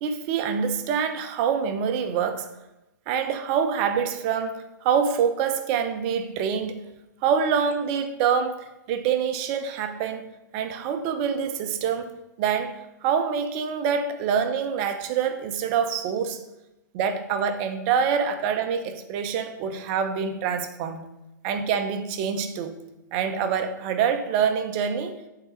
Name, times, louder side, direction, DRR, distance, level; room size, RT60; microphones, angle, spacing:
voice 1, 0.0-2.5 3.1-6.8 7.2-10.2 10.5-12.1 12.4-16.4 16.9-21.1 21.4-22.7 23.1-25.2, right 7 dB, 35° right, 7 dB, 0.8 m, -26 dB
8.0 x 3.8 x 4.5 m, 0.94 s
figure-of-eight pair, 110°, 10 cm